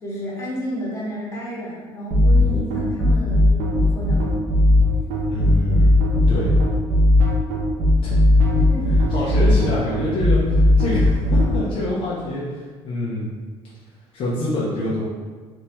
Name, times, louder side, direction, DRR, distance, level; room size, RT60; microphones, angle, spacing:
voice 1, 0.0-4.4 8.7-9.4, equal, 25° left, -7 dB, 1.5 m, -31 dB
sound 1, 2.1-11.5, left 1 dB, 80° right, 0.7 m, -16 dB
voice 2, 5.3-6.0 6.3-6.5 8.0-8.2 8.9-13.3 14.1-15.0, left 1 dB, 55° left, -7 dB, 0.9 m, -26 dB
3.4 x 3.0 x 2.9 m, 1.5 s
cardioid pair, 100°, 12 cm